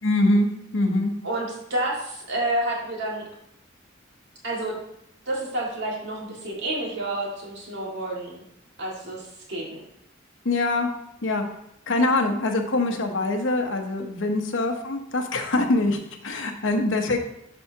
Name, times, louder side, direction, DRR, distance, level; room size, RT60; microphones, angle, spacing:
voice 1, 0.0-1.1 10.4-10.9 11.2-11.4 11.9-17.2, left 2 dB, 75° left, 4 dB, 1.0 m, -24 dB
voice 2, 1.2-3.3 4.4-4.8 5.3-8.4 8.8-9.8, right 1 dB, 60° right, -3 dB, 2.1 m, -29 dB
11.0 x 4.6 x 2.8 m, 0.77 s
head